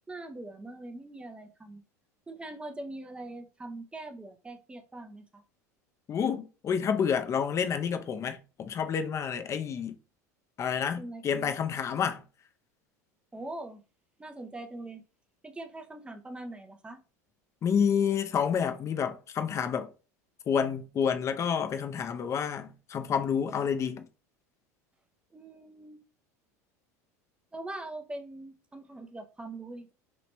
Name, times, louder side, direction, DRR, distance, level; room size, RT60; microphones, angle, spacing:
voice 1, 0.1-1.8 2.3-5.4 11.0-11.5 13.3-13.8 14.2-15.0 15.4-17.0 25.3-26.0 27.5-29.9, right 2 dB, 10° right, 0.7 m, -42 dB
voice 2, 6.1-10.0 10.6-12.2 17.6-19.9 20.5-24.0, left 7 dB, 35° left, 0.6 m, -29 dB
3.1 x 2.9 x 3.2 m
hypercardioid pair, 95°, 9 cm